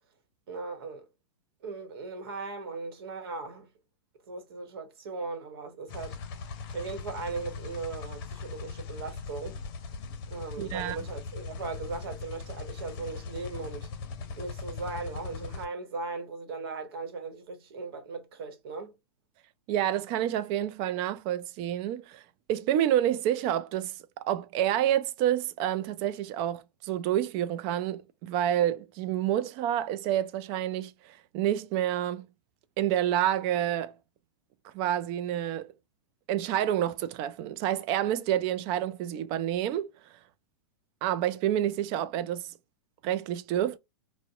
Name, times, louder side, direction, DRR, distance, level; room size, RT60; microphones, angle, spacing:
voice 1, 0.5-1.1 1.6-3.7 4.3-6.2 6.7-9.6 10.3-13.9 14.4-18.9, right 4 dB, 65° right, 1.0 m, -38 dB
sound 1, 5.9-15.7, left 4 dB, 50° left, 0.7 m, -40 dB
voice 2, 10.6-11.0 19.7-22.2 22.5-23.9 24.2-32.3 32.8-33.9 34.6-35.7 36.3-39.9 41.0-42.5 43.0-43.8, right 11 dB, 40° right, 0.4 m, -28 dB
2.6 x 2.1 x 2.3 m
hypercardioid pair, 120°, 14 cm